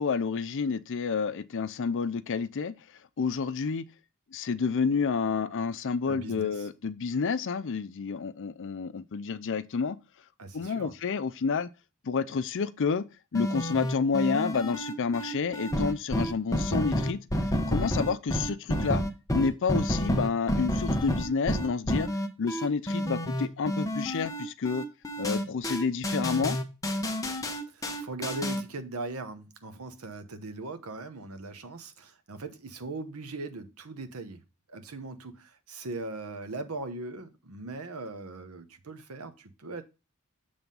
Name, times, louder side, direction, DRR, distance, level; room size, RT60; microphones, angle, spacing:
voice 1, 0.0-2.8 3.2-3.9 4.3-10.0 10.5-11.7 12.0-13.1 13.3-17.2 17.7-19.0 19.3-24.9 25.2-26.6, left 5 dB, 60° left, 0.5 m, -29 dB
voice 2, 6.1-6.7 10.4-10.9 27.7-34.4 34.7-39.8, right 3 dB, 70° right, 0.9 m, -39 dB
sound 1, 13.3-28.6, equal, 15° left, 0.8 m, -29 dB
7.5 x 3.5 x 5.3 m
head